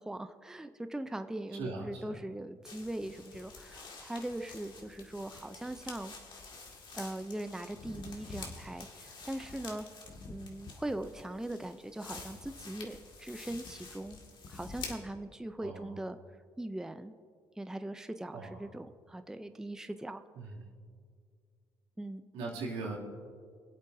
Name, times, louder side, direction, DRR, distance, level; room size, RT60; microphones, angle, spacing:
voice 1, 0.0-6.1 6.9-9.9 10.3-14.2 14.5-16.2 16.6-17.1 17.6-20.2 22.0-22.2, right 1 dB, 5° right, 9 dB, 0.5 m, -40 dB
voice 2, 1.5-2.2 15.6-16.0 18.3-18.7 20.3-20.7 22.3-23.0, right 3 dB, 90° right, -4 dB, 2.6 m, -40 dB
sound 1, 2.7-14.9, left 4 dB, 50° left, 1.9 m, -48 dB
24.5 x 8.2 x 2.7 m, 2.1 s
cardioid pair, 80°, 10 cm